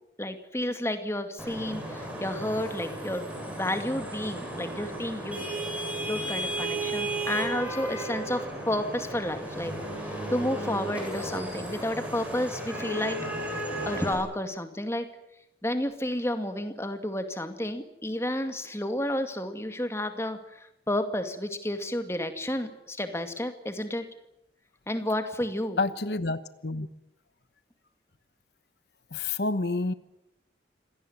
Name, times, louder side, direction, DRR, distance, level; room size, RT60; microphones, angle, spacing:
voice 1, 0.2-5.4 5.7-9.7 10.0-13.2 13.4-15.1 15.6-24.1 24.9-25.8, left 1 dB, 15° left, 8 dB, 2.2 m, -31 dB
Vehicle horn car horn honking / Traffic noise roadway noise, 1.4-14.1, right 1 dB, 10° right, 7.6 m, -34 dB
voice 2, 25.8-26.9 29.1-29.9, left 3 dB, 70° left, 13 dB, 1.1 m, -28 dB
26.0 x 17.5 x 9.6 m, 0.84 s
head